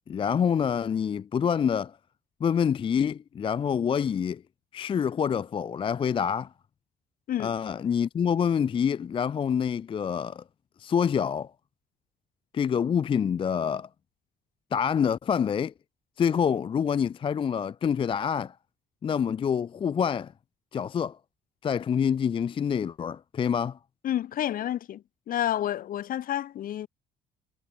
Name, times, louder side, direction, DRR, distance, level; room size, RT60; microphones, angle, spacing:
voice 1, 0.1-2.0 2.4-4.4 4.7-6.5 7.4-10.4 10.8-11.5 12.5-13.9 14.7-15.7 16.2-18.5 19.0-20.3 20.7-21.2 21.6-23.8, left 7 dB, 30° left, 0.5 m, -26 dB
voice 2, 24.0-26.9, left 11 dB, 55° left, 1.2 m, -30 dB
cardioid pair, 110°, 17 cm